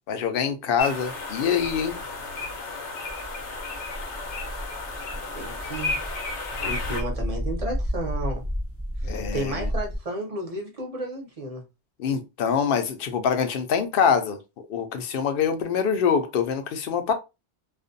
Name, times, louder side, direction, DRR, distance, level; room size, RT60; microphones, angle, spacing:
voice 1, 0.1-2.0 9.0-9.7 12.0-14.4 14.7-17.1, left 7 dB, 65° left, 0.7 m, -25 dB
sound 1, 0.8-7.0, left 3 dB, 85° left, 1.0 m, -33 dB
sound 2, 3.1-10.0, equal, 25° left, 0.3 m, -32 dB
voice 2, 5.1-6.1 6.6-8.5 9.0-11.6, right 1 dB, 40° right, 0.7 m, -33 dB
2.5 x 2.1 x 2.5 m
omnidirectional pair, 1.1 m